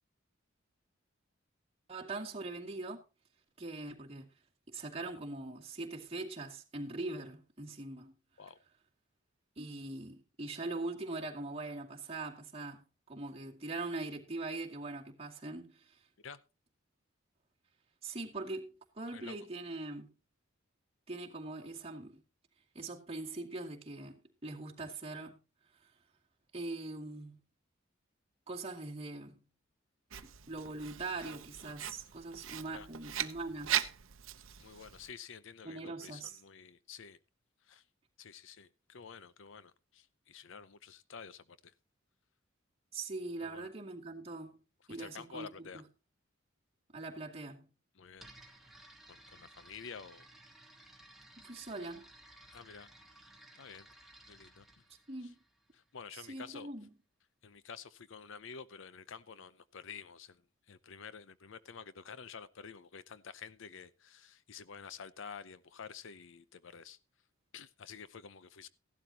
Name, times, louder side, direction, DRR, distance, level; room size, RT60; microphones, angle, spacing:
voice 1, 1.9-3.0 3.6-4.3 4.7-8.1 9.6-16.0 18.0-20.1 21.1-22.2 22.7-25.4 26.5-27.4 28.5-29.4 30.2-33.9 35.6-36.4 42.9-44.6 44.9-45.8 46.9-47.7 51.4-52.1 55.1-55.4 56.1-56.9, right 2 dB, 30° right, 2.2 m, -42 dB
Writing, 30.1-35.1, right 11 dB, 75° right, 0.8 m, -39 dB
voice 2, 34.6-37.2 37.6-37.8 38.2-41.7 43.4-43.7 45.0-45.8 48.0-48.3 49.1-50.3 52.5-52.9 53.5-53.9 54.3-54.8 55.9-56.7 57.4-60.4 60.7-67.0 67.5-68.7, left 6 dB, 65° left, 0.7 m, -50 dB
sound 1, 48.2-56.0, right 1 dB, ahead, 1.6 m, -58 dB
16.0 x 12.0 x 2.9 m
head